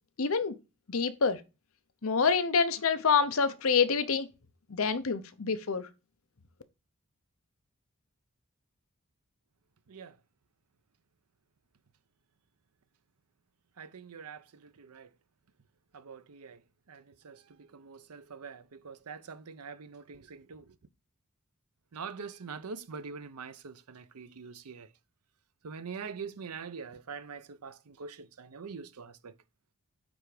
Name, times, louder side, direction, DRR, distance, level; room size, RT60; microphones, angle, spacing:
voice 1, 0.2-0.6 0.9-1.4 2.0-4.3 4.7-5.9, left 5 dB, 70° left, 0.7 m, -27 dB
voice 2, 13.8-15.1 15.9-16.6 16.9-20.8 21.9-24.9 25.6-29.3, right 5 dB, 90° right, 0.7 m, -44 dB
9.2 x 3.4 x 4.9 m
head